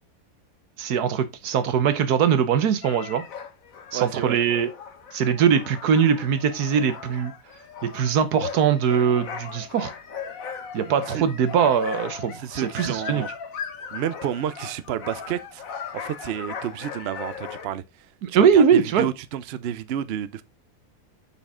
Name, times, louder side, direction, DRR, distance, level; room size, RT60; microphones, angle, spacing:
voice 1, 0.8-3.2 3.9-4.7 5.1-7.3 7.8-9.9 10.7-13.2 18.2-19.1, right 7 dB, 85° right, 1.5 m, -21 dB
sound 1, 2.8-17.7, left 6 dB, 65° left, 1.4 m, -38 dB
voice 2, 3.9-4.4 10.8-11.2 12.3-13.3 13.9-15.6 15.9-17.8 18.3-20.4, right 10 dB, 60° right, 0.7 m, -30 dB
6.3 x 5.6 x 3.6 m
omnidirectional pair, 1.6 m